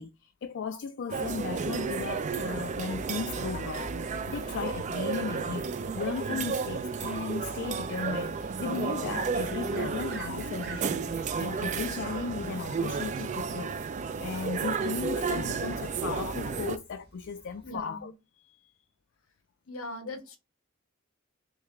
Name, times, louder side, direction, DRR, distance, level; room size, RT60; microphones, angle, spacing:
voice 1, 0.0-18.1, left 5 dB, 60° left, 0.4 m, -36 dB
sound 1, 1.1-16.8, right 5 dB, 35° right, 0.3 m, -32 dB
sound 2, 6.0-16.4, right 5 dB, 80° right, 0.9 m, -48 dB
sound 3, 9.4-17.7, right 5 dB, 50° right, 1.0 m, -51 dB
voice 2, 17.6-18.1 19.7-20.4, left 1 dB, 90° left, 1.0 m, -40 dB
3.3 x 3.2 x 3.6 m
head